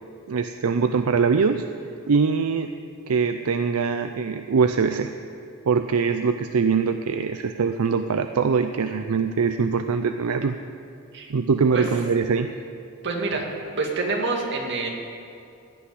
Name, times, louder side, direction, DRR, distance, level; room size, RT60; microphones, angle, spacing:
voice 1, 0.3-1.6 2.1-2.7 3.1-5.1 5.7-10.6 11.3-12.5, right 5 dB, 80° right, 8 dB, 0.5 m, -22 dB
voice 2, 13.0-13.4 13.7-14.9, right 3 dB, 55° right, 0 dB, 2.2 m, -26 dB
17.0 x 5.8 x 9.7 m, 2.6 s
head